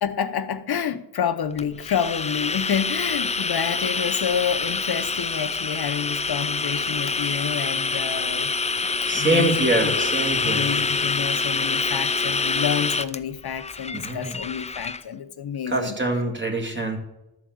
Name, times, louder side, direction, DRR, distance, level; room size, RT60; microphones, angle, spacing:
voice 1, 0.0-8.5 9.0-10.0 10.4-16.0, left 8 dB, 70° left, 0.8 m, -28 dB
sound 1, 1.6-15.0, left 4 dB, 15° left, 0.4 m, -26 dB
voice 2, 9.0-10.7 13.9-14.4 15.7-17.0, right 2 dB, 25° right, 2.2 m, -24 dB
12.0 x 4.7 x 7.7 m
cardioid pair, 75°, 41 cm